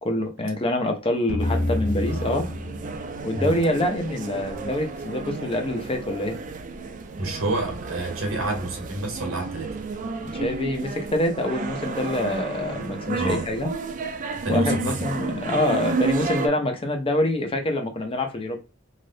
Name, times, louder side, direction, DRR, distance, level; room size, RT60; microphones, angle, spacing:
voice 1, 0.0-2.5 3.2-6.4 10.4-13.7 14.5-18.6, left 1 dB, 25° left, 0.6 m, -26 dB
sound 1, 1.3-4.2, left 1 dB, 70° left, 0.7 m, -29 dB
sound 2, 1.4-16.5, right 3 dB, 40° right, 0.3 m, -31 dB
voice 2, 7.2-9.8 13.2-13.5 14.4-15.3, right 2 dB, 75° right, 1.1 m, -29 dB
3.3 x 2.5 x 2.6 m
head